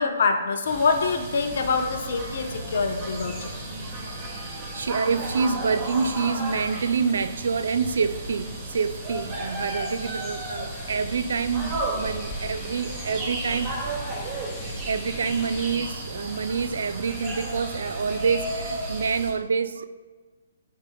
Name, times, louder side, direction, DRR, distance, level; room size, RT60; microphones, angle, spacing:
voice 1, 0.0-3.5, left 4 dB, 60° left, 0.8 m, -25 dB
sound 1, 0.6-19.3, right 1 dB, 35° right, 2.1 m, -34 dB
voice 2, 4.1-13.8 14.6-19.9, right 5 dB, 70° right, 0.4 m, -27 dB
sound 2, 10.7-15.8, left 2 dB, 30° left, 0.8 m, -41 dB
12.0 x 4.8 x 2.3 m
hypercardioid pair, 140°, 0 cm